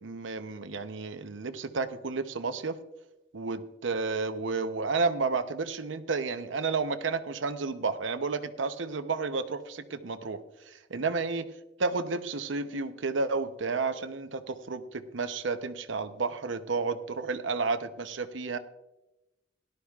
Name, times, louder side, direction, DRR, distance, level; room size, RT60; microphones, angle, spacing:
voice 1, 0.0-2.8 3.3-10.4 10.7-11.4 11.8-18.6, right 4 dB, 85° right, 10 dB, 0.7 m, -31 dB
17.5 x 12.0 x 2.4 m, 0.99 s
head